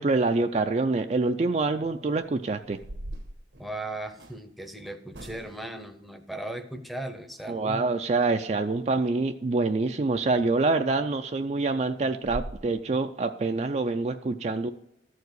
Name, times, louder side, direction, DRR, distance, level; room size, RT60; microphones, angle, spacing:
voice 1, 0.0-2.8 7.5-14.7, right 3 dB, 35° right, 7 dB, 0.4 m, -26 dB
sound 1, 2.1-2.2 2.6-4.4 5.1-5.8 10.3-10.4 10.8-11.0 11.4-11.5 11.8-11.9 12.2-12.6, right 1 dB, 85° right, 1.2 m, -40 dB
voice 2, 3.6-7.9, right 1 dB, ahead, 6 dB, 0.7 m, -37 dB
13.5 x 4.7 x 8.0 m, 0.81 s
head